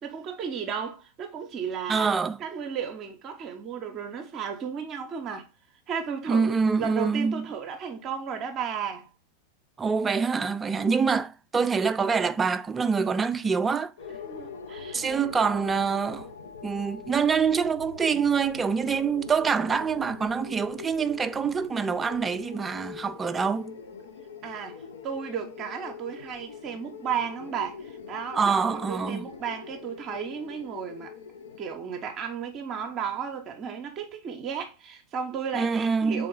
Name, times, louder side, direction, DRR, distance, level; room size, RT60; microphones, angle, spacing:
voice 1, 0.0-5.5 5.9-9.1 14.2-15.2 24.4-31.1 31.6-36.3, right 7 dB, 30° right, 0.7 m, -34 dB
voice 2, 1.9-2.4 6.3-7.4 9.8-13.9 14.9-16.3 16.6-23.7 28.3-29.3 35.5-36.3, right 5 dB, 15° right, 0.3 m, -25 dB
sound 1, 14.0-31.8, left 6 dB, 65° left, 0.6 m, -43 dB
3.8 x 3.6 x 3.6 m
figure-of-eight pair, 90°, 0 cm